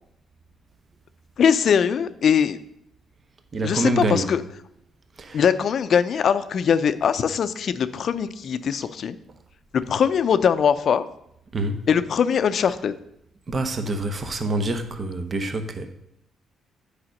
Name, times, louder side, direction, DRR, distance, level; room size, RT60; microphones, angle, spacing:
voice 1, 1.4-2.6 3.6-4.4 5.3-9.2 9.7-11.1 11.9-12.9, left 7 dB, 60° left, 12 dB, 0.5 m, -21 dB
voice 2, 3.5-4.3 5.2-5.4 11.5-11.8 13.5-15.9, right 2 dB, 40° right, 7 dB, 1.0 m, -26 dB
8.7 x 5.0 x 6.5 m, 0.76 s
cardioid pair, 90°, 0 cm